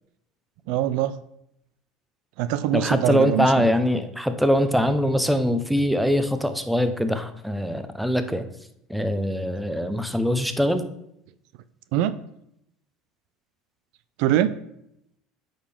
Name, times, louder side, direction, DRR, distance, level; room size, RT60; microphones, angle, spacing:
voice 1, 0.7-1.2 2.4-3.7 11.9-12.2 14.2-14.5, right 12 dB, 70° right, 14 dB, 0.4 m, -23 dB
voice 2, 2.7-8.4 8.9-10.8, equal, ahead, 10 dB, 0.8 m, -23 dB
8.8 x 5.2 x 3.6 m, 0.77 s
hypercardioid pair, 85°, 0 cm